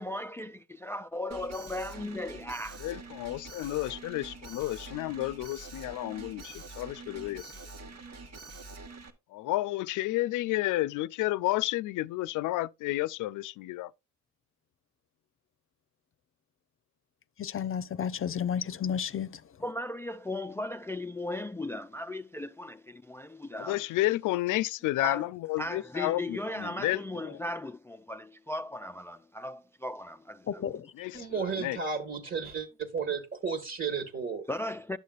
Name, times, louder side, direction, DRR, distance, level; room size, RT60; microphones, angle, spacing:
voice 1, 0.0-2.9 19.6-23.8 25.0-25.2 25.6-30.6 34.5-35.0, left 1 dB, 10° left, 0.4 m, -37 dB
Alarm, 1.3-9.1, right 3 dB, 55° right, 1.7 m, -45 dB
voice 2, 2.8-7.5 7.8-8.0 9.3-13.9 23.5-27.4 30.9-31.8, left 17 dB, 85° left, 0.5 m, -31 dB
voice 3, 17.4-19.4 30.5-30.9, left 8 dB, 45° left, 0.7 m, -32 dB
voice 4, 31.1-34.4, right 5 dB, 40° right, 1.7 m, -33 dB
11.5 x 6.6 x 2.4 m
cardioid pair, 90°, 30 cm